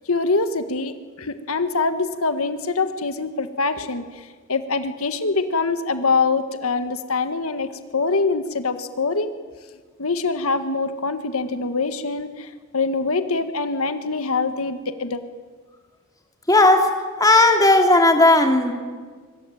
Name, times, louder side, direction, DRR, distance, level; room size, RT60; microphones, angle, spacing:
voice 1, 0.1-9.3 10.0-15.2, left 3 dB, 75° left, 9 dB, 1.5 m, -24 dB
voice 2, 16.5-16.9 17.2-18.7, left 2 dB, 15° left, 4 dB, 3.0 m, -15 dB
25.0 x 24.5 x 9.2 m, 1.5 s
head